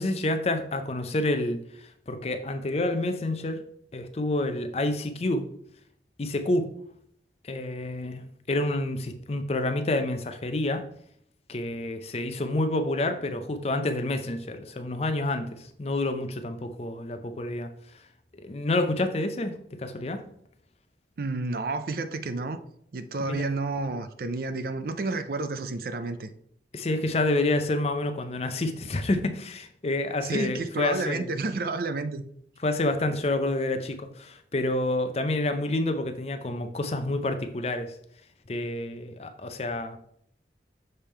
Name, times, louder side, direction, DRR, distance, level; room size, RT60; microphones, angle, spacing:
voice 1, 0.0-3.6 3.9-5.5 6.2-6.7 7.4-10.8 11.5-17.7 18.4-19.5 19.8-20.2 23.2-23.4 26.7-31.3 32.6-38.0 38.5-40.0, left 2 dB, 35° left, 0.6 m, -28 dB
voice 2, 21.2-22.6 22.9-26.3 30.2-32.2, right 3 dB, 55° right, 0.5 m, -30 dB
6.7 x 3.6 x 4.3 m
head